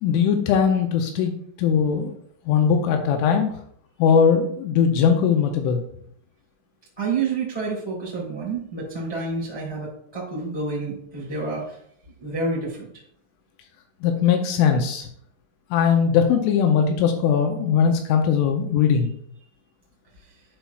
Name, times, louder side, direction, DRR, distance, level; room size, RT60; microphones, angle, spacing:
voice 1, 0.0-1.3 1.6-2.1 2.5-3.5 4.0-5.8 14.0-15.1 15.7-19.1, left 7 dB, 85° left, 4 dB, 3.0 m, -20 dB
voice 2, 7.0-11.8 12.2-12.9, right 4 dB, 10° left, -7 dB, 1.5 m, -29 dB
11.0 x 4.5 x 2.3 m, 0.66 s
omnidirectional pair, 5.8 m